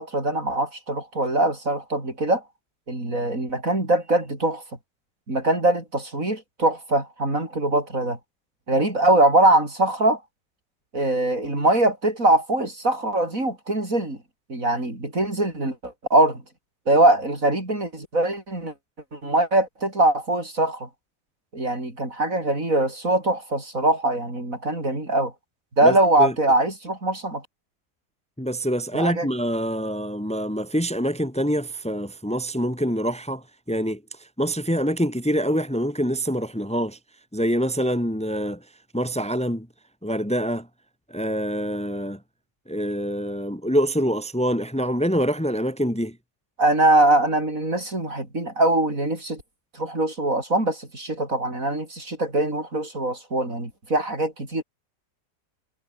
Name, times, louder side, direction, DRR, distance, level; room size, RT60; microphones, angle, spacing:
voice 1, 0.0-2.4 2.9-4.6 5.3-8.2 8.7-10.2 10.9-14.2 14.5-16.4 16.9-18.7 19.1-20.9 21.5-25.3 25.8-27.4 28.9-29.3 46.6-49.4 49.7-54.6, right 2 dB, 45° right, 7.1 m, -22 dB
voice 2, 25.8-26.3 28.4-37.0 37.3-38.6 38.9-39.7 40.0-40.7 41.1-42.2 42.7-46.2, equal, 5° left, 3.0 m, -25 dB
omnidirectional pair, 1.9 m